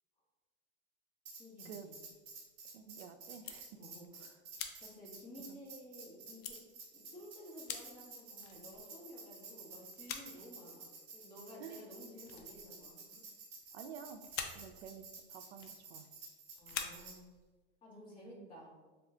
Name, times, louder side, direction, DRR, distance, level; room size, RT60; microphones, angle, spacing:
Tambourine, 1.3-17.2, right 4 dB, 40° right, 1.1 m, -52 dB
voice 1, 1.4-1.9 3.7-4.0 4.8-6.6 6.9-10.9 11.1-13.2 16.5-17.2 17.8-18.7, left 1 dB, 15° left, -6 dB, 1.2 m, -53 dB
sound 1, 2.0-2.9 3.3-4.1 4.6-6.0 6.4-6.6 7.3-7.4 7.7-8.0 8.4-9.1 9.7-10.4 10.7-11.1 11.7-11.9 12.2-13.3 13.6-13.8 14.1-16.3 16.6-17.6, left 7 dB, 50° left, 0.5 m, -46 dB
voice 2, 2.6-3.7 4.1-4.3 5.5-5.6 10.3-10.4 11.6-11.8 13.7-16.1 18.4-18.5, right 7 dB, 85° right, 8 dB, 0.5 m, -51 dB
3.5 x 2.3 x 3.7 m, 1.3 s
supercardioid pair, 140°, 32 cm